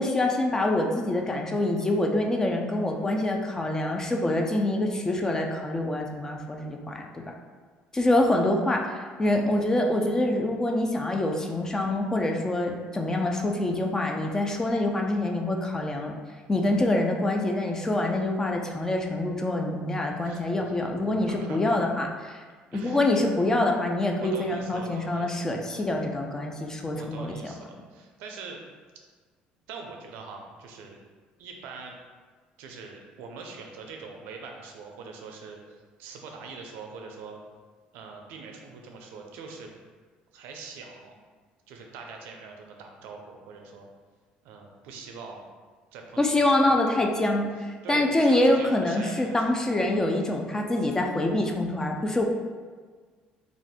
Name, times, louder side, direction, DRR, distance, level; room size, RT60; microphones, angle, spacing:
voice 1, 0.0-7.3 7.9-16.1 16.5-22.4 22.7-27.5 46.2-52.2, left 1 dB, 15° left, 2 dB, 0.3 m, -25 dB
voice 2, 20.2-21.8 22.7-23.0 24.2-25.8 26.9-28.6 29.7-31.0 31.4-31.9 32.6-37.4 37.9-39.7 40.3-41.1 41.7-43.9 44.4-45.4 45.9-46.7 47.8-49.8, right 4 dB, 85° right, 2 dB, 0.4 m, -43 dB
2.4 x 2.4 x 3.5 m, 1.5 s
cardioid pair, 110°, 3 cm